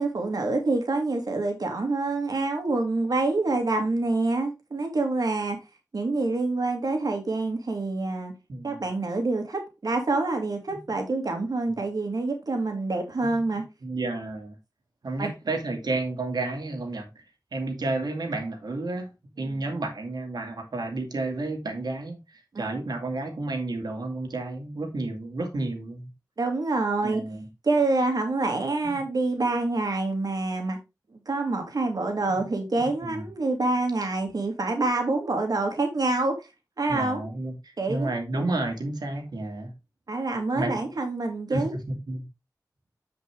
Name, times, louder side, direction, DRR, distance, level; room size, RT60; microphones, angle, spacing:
voice 1, 0.0-5.6 5.9-8.3 8.6-13.6 15.2-15.3 19.4-19.7 22.5-22.7 26.4-27.2 27.6-30.8 31.3-36.3 36.8-37.2 37.8-38.2 40.1-41.7, right 2 dB, 70° right, 2.3 m, -26 dB
voice 2, 8.5-8.8 10.7-10.8 11.7-11.8 13.2-13.4 13.8-14.6 15.0-17.1 17.5-19.1 19.4-26.1 27.0-27.5 28.8-29.0 32.3-32.4 32.8-33.2 36.9-39.7 40.5-40.8 41.5-42.2, right 2 dB, 85° right, 2.3 m, -31 dB
9.6 x 5.2 x 3.5 m
wide cardioid pair, 70°, 7 cm